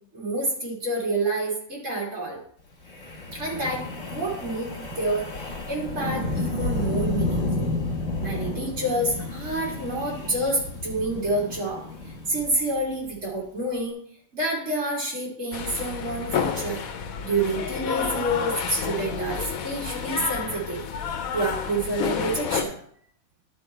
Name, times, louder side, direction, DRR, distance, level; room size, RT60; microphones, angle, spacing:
voice 1, 0.1-2.4 3.3-7.7 8.2-11.8 12.3-14.0 14.3-16.8 17.2-20.8 21.3-22.8, right 1 dB, 65° right, -4 dB, 3.1 m, -28 dB
Wind, 2.9-13.1, left 2 dB, 65° left, 2.1 m, -31 dB
sound 1, 15.5-22.6, left 7 dB, 90° left, 1.2 m, -30 dB
12.0 x 4.3 x 4.4 m, 0.62 s
omnidirectional pair, 1.4 m